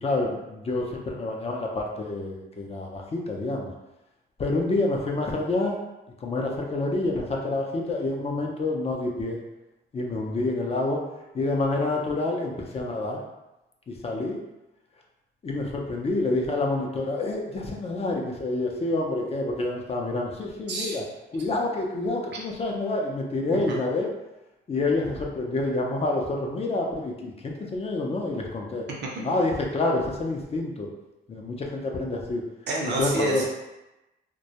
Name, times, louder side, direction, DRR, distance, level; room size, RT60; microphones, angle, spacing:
voice 1, 0.0-3.7 4.4-5.8 6.2-9.4 9.9-11.0 11.3-13.2 13.9-14.4 15.4-21.0 21.3-24.1 24.7-28.8 29.2-30.9 31.3-32.4 32.9-33.4, left 2 dB, 30° left, 0 dB, 0.4 m, -28 dB
voice 2, 32.7-33.5, right 2 dB, 60° right, -2 dB, 0.6 m, -28 dB
2.2 x 2.1 x 2.7 m, 0.98 s
cardioid pair, 90°, 20 cm